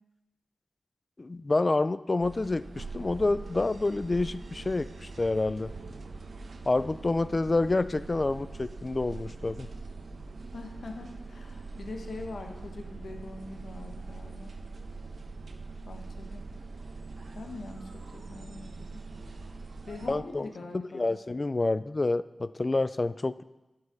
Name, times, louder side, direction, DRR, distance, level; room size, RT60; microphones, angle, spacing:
voice 1, 1.2-5.7 6.7-9.7 20.1-20.5 20.7-23.4, left 2 dB, 35° left, 15 dB, 0.3 m, -28 dB
sound 1, 2.2-20.2, right 3 dB, 70° right, 0.8 m, -43 dB
voice 2, 10.5-14.5 15.9-16.4 17.3-19.0 19.9-21.2, left 3 dB, 85° left, 3 dB, 1.1 m, -43 dB
11.5 x 5.4 x 6.0 m, 1.0 s
wide cardioid pair, 115°, 0 cm